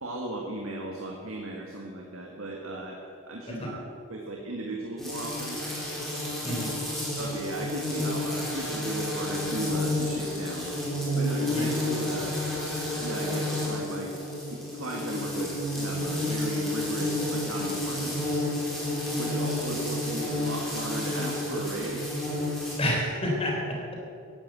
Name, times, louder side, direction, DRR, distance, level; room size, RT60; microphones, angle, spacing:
voice 1, 0.0-3.0 3.3-3.7 4.1-5.6 7.2-10.7 11.2-12.4 13.0-14.1 14.5-18.3 19.2-22.2, right 2 dB, 80° right, 0 dB, 2.0 m, -36 dB
voice 2, 3.5-3.9 6.4-6.7 11.5-11.7 22.8-24.0, equal, 25° left, -1 dB, 3.7 m, -29 dB
sound 1, 5.0-22.8, left 1 dB, ahead, 4.5 m, -30 dB
16.5 x 11.5 x 7.7 m, 2.6 s
head